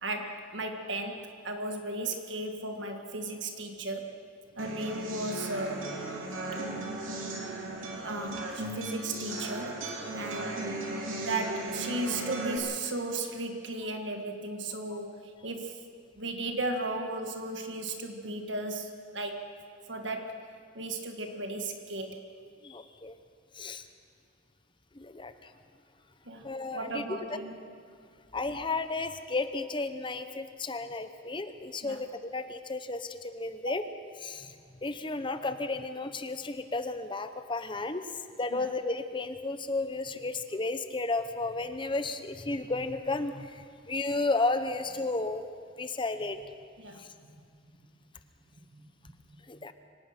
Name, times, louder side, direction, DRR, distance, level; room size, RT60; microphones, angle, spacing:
voice 1, 0.0-4.2 4.6-5.8 8.0-9.8 10.1-10.7 11.2-15.9 16.2-19.4 19.9-20.4 20.7-22.2 26.3-27.5 31.8-32.0 33.7-33.8 38.5-38.7 46.8-47.4 48.7-49.4, right 2 dB, 65° right, 4 dB, 1.9 m, -35 dB
sound 1, 4.6-12.6, right 2 dB, 85° right, 3.5 m, -36 dB
voice 2, 22.6-23.1 23.6-23.8 25.0-25.3 26.4-27.0 28.3-33.8 34.2-34.5 34.8-38.0 38.4-45.5 45.8-46.4 47.0-47.1 49.5-49.7, left 3 dB, 25° left, 10 dB, 0.8 m, -33 dB
24.5 x 18.5 x 6.0 m, 2.1 s
head